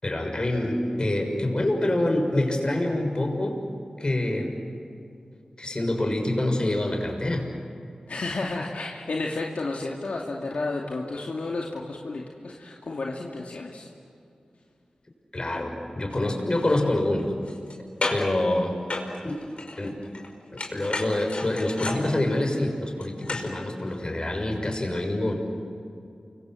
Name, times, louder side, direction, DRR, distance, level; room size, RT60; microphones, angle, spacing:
voice 1, 0.0-3.6 4.0-4.6 5.6-7.5 15.3-17.3 18.1-18.8 19.2-19.4 19.8-20.0 20.5-25.3, left 1 dB, 40° left, 3 dB, 6.5 m, -26 dB
voice 2, 8.1-13.9, left 3 dB, 75° left, -1 dB, 2.4 m, -32 dB
sound 1, 16.1-16.2 16.5-17.7 18.0-18.4 18.9-20.3 20.6-23.5 23.9-24.0, left 2 dB, 55° left, 5.1 m, -33 dB
29.5 x 25.0 x 7.9 m, 2.5 s
cardioid pair, 40°, 2 cm